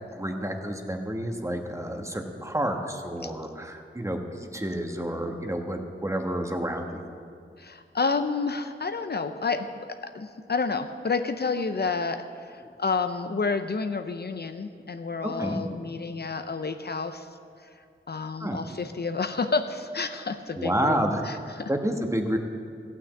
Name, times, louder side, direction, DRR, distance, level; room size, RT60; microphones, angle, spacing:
voice 1, 0.1-7.0 12.6-12.7 15.2-15.6 18.4-18.7 20.6-21.2 21.7-22.4, right 1 dB, 15° right, 4 dB, 1.2 m, -29 dB
voice 2, 7.6-17.3 18.1-21.0 21.2-21.7, left 4 dB, 50° left, 8 dB, 0.6 m, -30 dB
15.5 x 6.0 x 8.3 m, 2.3 s
wide cardioid pair, 75°, 21 cm